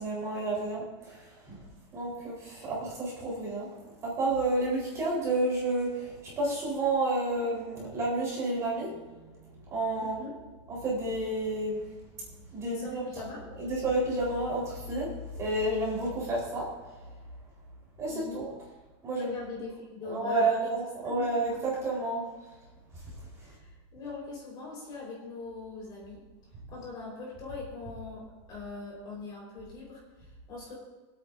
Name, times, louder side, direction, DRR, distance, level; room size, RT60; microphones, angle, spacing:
voice 1, 0.0-1.6 1.9-10.2 10.7-11.8 12.5-13.0 13.6-16.7 18.0-18.6 19.0-19.3 20.0-22.3 23.4-23.5, right 2 dB, 20° right, -5 dB, 4.1 m, -30 dB
voice 2, 10.0-10.3 12.6-13.4 18.1-18.4 19.2-20.7 21.0-21.2 23.4-26.2 26.7-28.2 28.5-30.7, left 3 dB, 30° left, -3 dB, 4.5 m, -42 dB
25.0 x 8.7 x 2.7 m, 1.2 s
supercardioid pair, 170°, 15 cm